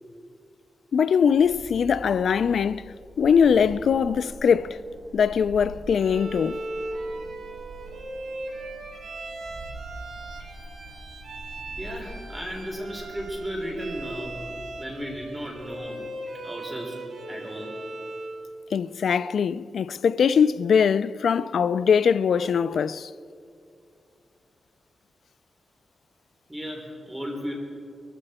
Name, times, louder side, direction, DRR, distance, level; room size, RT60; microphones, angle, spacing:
voice 1, 0.9-4.8 5.1-6.6 18.7-23.1, left 7 dB, 75° left, 0.4 m, -22 dB
sound 1, 1.2-15.7, right 1 dB, 40° right, 2.0 m, -45 dB
Bowed string instrument, 5.9-18.4, right 2 dB, 85° right, 4.1 m, -38 dB
voice 2, 11.8-14.5 14.8-16.1 16.4-17.0 17.3-17.8 26.5-27.5, equal, 10° right, 3.6 m, -35 dB
23.0 x 14.5 x 4.3 m
wide cardioid pair, 120°, 0 cm